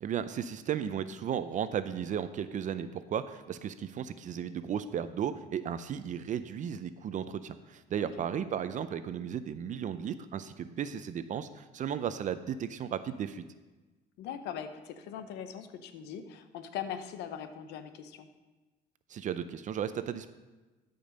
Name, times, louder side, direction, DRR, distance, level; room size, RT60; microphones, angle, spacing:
voice 1, 0.0-13.4 19.1-20.3, right 8 dB, 50° right, 12 dB, 0.5 m, -35 dB
voice 2, 14.2-18.3, left 8 dB, 85° left, 9 dB, 0.9 m, -41 dB
13.0 x 5.3 x 5.2 m, 1.2 s
cardioid pair, 110°, 17 cm